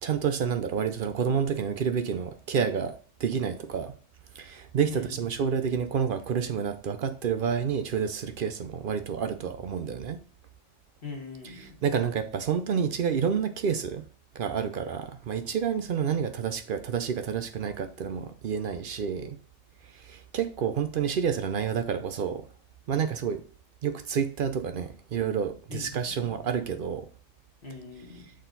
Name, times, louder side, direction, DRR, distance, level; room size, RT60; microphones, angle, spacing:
voice 1, 0.0-2.9 3.2-3.9 4.3-10.2 11.6-14.0 14.3-19.4 19.8-22.4 22.9-23.4 23.8-27.1, right 7 dB, 60° right, 0.6 m, -29 dB
voice 2, 4.9-5.3 11.0-11.8 25.7-26.3 27.6-28.3, left 5 dB, 45° left, 1.5 m, -41 dB
6.4 x 4.2 x 3.9 m
omnidirectional pair, 1.4 m